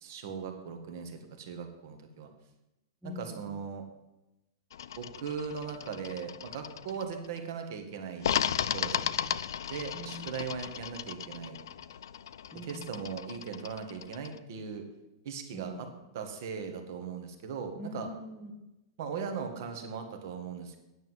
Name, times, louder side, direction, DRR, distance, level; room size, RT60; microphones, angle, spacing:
voice 1, 0.0-2.3 3.0-3.9 5.0-8.3 8.7-9.0 9.7-11.6 12.6-14.8 15.2-15.7 16.1-18.1 19.0-20.8, right 6 dB, 45° right, 6 dB, 1.6 m, -39 dB
voice 2, 3.0-3.6 7.2-7.3 9.0-9.4 9.9-10.3 12.5-12.9 15.5-15.9 17.8-18.7, left 1 dB, 5° right, -3 dB, 1.2 m, -44 dB
sound 1, 4.7-7.4 8.2-14.4, left 9 dB, 80° left, 0.5 m, -36 dB
9.7 x 6.5 x 8.1 m, 0.97 s
supercardioid pair, 175°, 2 cm